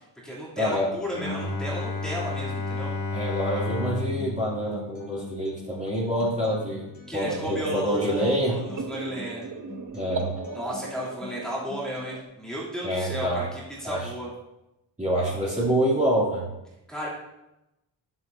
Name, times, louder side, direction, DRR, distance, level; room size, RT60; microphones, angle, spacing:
voice 1, 0.0-2.9 7.1-9.4 10.5-14.3 16.9-17.1, equal, ahead, -8 dB, 2.9 m, -34 dB
voice 2, 0.6-0.9 1.2-1.4 3.1-8.6 9.9-10.3 12.8-13.5 13.8-14.1 15.0-16.5, equal, 15° right, -8 dB, 2.7 m, -26 dB
Bowed string instrument, 1.1-6.8, left 3 dB, 45° left, 1.8 m, -33 dB
Acoustic guitar, 4.2-12.2, left 3 dB, 20° left, 2.5 m, -45 dB
sound 1, 7.2-12.2, right 3 dB, 40° right, 0.9 m, -37 dB
10.5 x 8.0 x 2.7 m, 0.92 s
wide cardioid pair, 130°, 47 cm